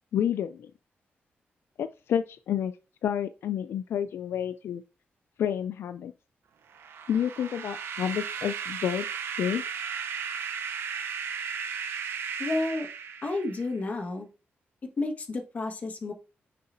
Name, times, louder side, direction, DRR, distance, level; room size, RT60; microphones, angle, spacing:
voice 1, 0.1-0.7 1.8-2.7 3.0-4.8 5.4-6.1 7.1-9.1 9.4-9.6, left 9 dB, 80° left, 11 dB, 0.3 m, -29 dB
sound 1, 6.7-13.7, right 7 dB, 75° right, 0.7 m, -35 dB
voice 2, 12.4-12.9 13.2-14.3 15.0-16.1, left 2 dB, 35° left, 2 dB, 1.4 m, -31 dB
6.6 x 5.6 x 2.6 m, 0.32 s
wide cardioid pair, 145°, 4 cm